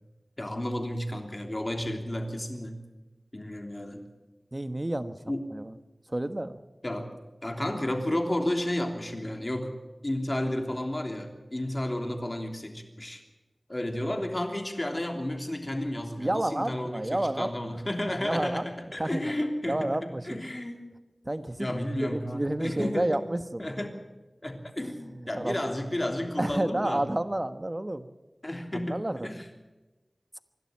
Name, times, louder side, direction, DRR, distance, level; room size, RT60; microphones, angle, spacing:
voice 1, 0.4-2.8 3.3-4.0 5.2-5.5 6.8-7.1 7.4-9.8 10.0-13.2 13.7-20.9 21.6-23.2 23.6-24.0 24.4-27.1 28.4-29.5, left 1 dB, 30° left, 3 dB, 3.2 m, -32 dB
voice 2, 4.5-5.2 5.5-5.7 6.1-6.6 16.2-17.5 18.2-18.7 19.0-19.4 19.7-20.5 21.2-21.7 22.0-23.8 25.0-25.6 26.4-28.1 28.7-29.4, right 1 dB, 30° right, 10 dB, 1.2 m, -30 dB
26.0 x 12.0 x 8.8 m, 1.2 s
wide cardioid pair, 50°, 0 cm